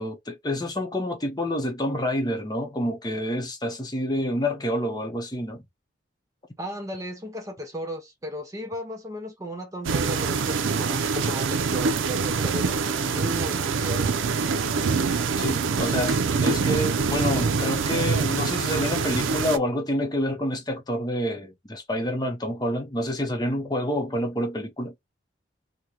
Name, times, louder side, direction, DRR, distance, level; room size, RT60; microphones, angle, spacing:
voice 1, 0.0-5.6 15.4-24.9, left 1 dB, 20° left, 0.7 m, -28 dB
voice 2, 6.6-14.1, equal, 15° right, 0.5 m, -35 dB
sound 1, 9.8-19.6, right 5 dB, 90° right, 0.5 m, -25 dB
3.0 x 2.1 x 3.7 m
head